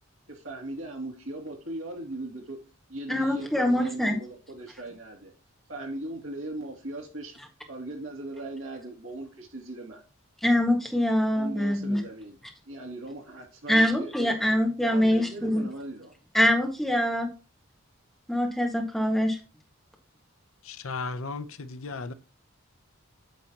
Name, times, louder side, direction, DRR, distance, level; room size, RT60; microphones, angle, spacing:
voice 1, 0.3-2.6 2.9-5.3 5.7-7.4 7.7-10.0 11.3-12.4 12.6-16.1, right 1 dB, 70° right, 2.6 m, -39 dB
voice 2, 3.1-4.2 10.4-12.0 13.7-15.6 16.3-17.3 18.3-19.4, left 1 dB, ahead, 1.5 m, -24 dB
voice 3, 20.6-22.1, left 4 dB, 75° left, 0.7 m, -35 dB
9.0 x 6.4 x 2.9 m
head